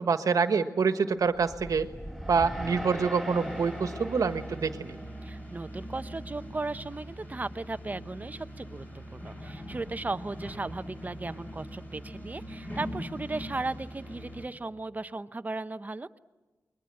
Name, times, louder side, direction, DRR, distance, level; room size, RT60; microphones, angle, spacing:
voice 1, 0.0-1.9 2.3-4.9, right 5 dB, 70° right, 9 dB, 1.4 m, -26 dB
sound 1, 1.3-5.7, equal, 5° left, 5.2 m, -40 dB
sound 2, 3.3-14.5, equal, 25° left, 6.9 m, -42 dB
voice 2, 5.2-8.8 9.1-16.2, right 3 dB, 25° right, 12 dB, 0.8 m, -36 dB
29.5 x 22.0 x 7.7 m, 1.2 s
wide cardioid pair, 100°, 6 cm